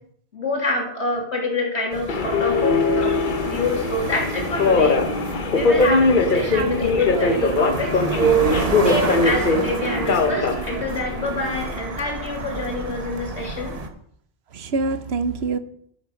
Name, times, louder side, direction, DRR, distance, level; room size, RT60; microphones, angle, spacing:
voice 1, 0.3-3.2 3.4-5.0 5.5-8.5 8.8-13.8, left 1 dB, 90° left, 0 dB, 3.2 m, -26 dB
sound 1, 1.9-13.9, right 3 dB, 35° right, 1.2 m, -30 dB
Subway metro underground, 2.1-11.8, left 3 dB, 50° left, 1.1 m, -21 dB
voice 2, 6.3-7.0 14.5-15.6, right 4 dB, 70° right, 11 dB, 1.1 m, -26 dB
12.5 x 7.2 x 6.4 m, 0.69 s
omnidirectional pair, 1.1 m